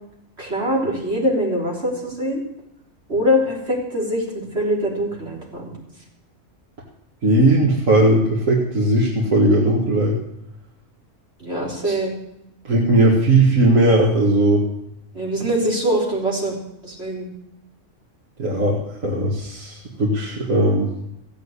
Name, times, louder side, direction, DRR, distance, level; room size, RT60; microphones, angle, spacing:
voice 1, 0.4-2.4 3.1-5.7 11.4-12.1 15.1-16.6 16.8-17.3, equal, 55° right, -3 dB, 4.1 m, -23 dB
voice 2, 7.2-10.2 11.8-12.0 12.6-14.7 18.4-20.9, right 1 dB, 85° right, -3 dB, 2.3 m, -18 dB
15.5 x 8.2 x 8.2 m, 0.84 s
omnidirectional pair, 1.3 m